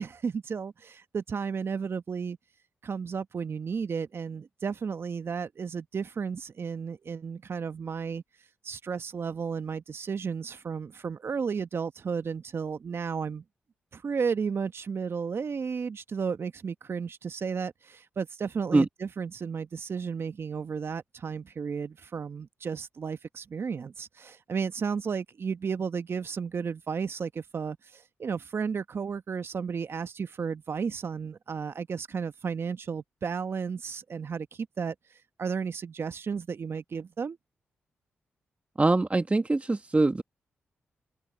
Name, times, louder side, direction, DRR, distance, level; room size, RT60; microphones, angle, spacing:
voice 1, 0.0-2.4 2.8-8.2 8.6-13.4 13.9-34.9 35.4-37.4, right 6 dB, 55° right, 1.5 m, -33 dB
voice 2, 38.8-40.2, right 2 dB, 30° right, 1.2 m, -23 dB
supercardioid pair, 40°, 5 cm